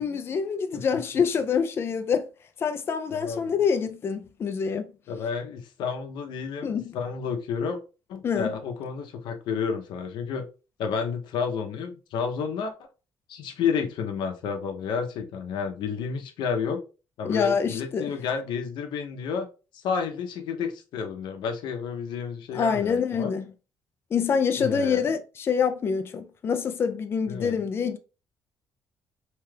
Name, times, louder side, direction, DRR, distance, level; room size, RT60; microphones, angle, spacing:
voice 1, 0.0-2.3 2.6-4.9 6.6-7.0 8.2-8.6 17.2-18.1 22.5-23.5 24.1-28.0, left 6 dB, 30° left, 0.3 m, -26 dB
voice 2, 3.1-3.5 5.1-7.8 8.1-10.5 10.8-12.7 13.3-16.8 17.2-19.5 19.7-23.3 24.6-25.0 27.3-27.6, left 6 dB, 75° left, 0.7 m, -31 dB
2.8 x 2.3 x 3.2 m
cardioid pair, 160°, 8 cm